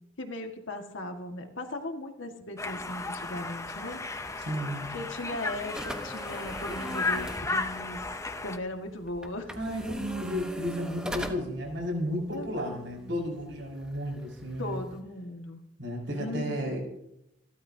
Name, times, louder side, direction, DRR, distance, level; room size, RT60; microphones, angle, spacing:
voice 1, 0.2-4.0 4.9-8.0 8.4-9.5 11.1-11.6 12.3-13.2 14.6-15.6 16.1-16.8, left 1 dB, 70° left, 4 dB, 1.9 m, -38 dB
Conversation, 2.6-8.6, left 3 dB, 15° left, 0.6 m, -34 dB
sound 1, 4.2-15.0, equal, 5° right, 1.1 m, -43 dB
voice 2, 4.4-5.0 9.5-14.8 15.8-16.8, equal, 60° right, -1 dB, 5.8 m, -33 dB
28.5 x 12.5 x 2.8 m, 0.85 s
head